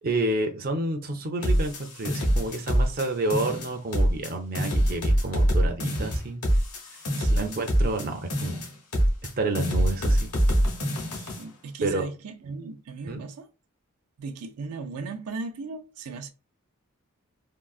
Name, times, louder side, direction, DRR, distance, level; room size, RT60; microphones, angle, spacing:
voice 1, 0.0-6.4 6.9-7.0 7.3-8.6 9.4-10.3 11.8-12.1 13.1-13.2, right 2 dB, 40° right, 0.5 m, -29 dB
sound 1, 1.4-3.0 3.3-4.3 4.5-8.0 8.3-9.3 9.5-11.4, equal, 85° left, 1.1 m, -24 dB
voice 2, 7.2-7.6 11.1-13.5 14.2-16.3, right 4 dB, 90° right, 0.5 m, -37 dB
3.6 x 2.1 x 2.3 m
head